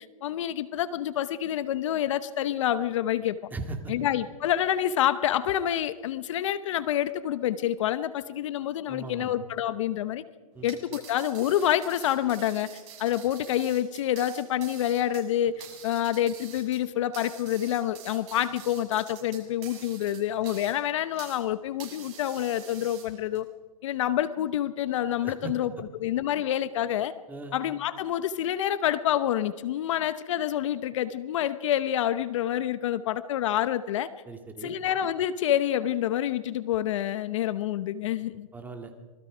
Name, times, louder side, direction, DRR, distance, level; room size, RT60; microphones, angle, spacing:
voice 1, 0.0-3.4 3.9-10.2 10.6-12.7 13.0-23.5 23.8-27.1 27.5-34.1 34.6-38.5, left 11 dB, 55° left, 14 dB, 1.0 m, -27 dB
voice 2, 3.5-3.9 8.9-9.3 10.5-10.7 25.2-25.6 27.3-27.6 34.3-34.7 38.5-39.1, right 3 dB, 10° right, 5 dB, 2.2 m, -38 dB
sound 1, 10.6-21.5 21.8-23.4, right 8 dB, 50° right, 7.3 m, -47 dB
26.0 x 20.5 x 5.0 m, 1.4 s
hypercardioid pair, 140°, 19 cm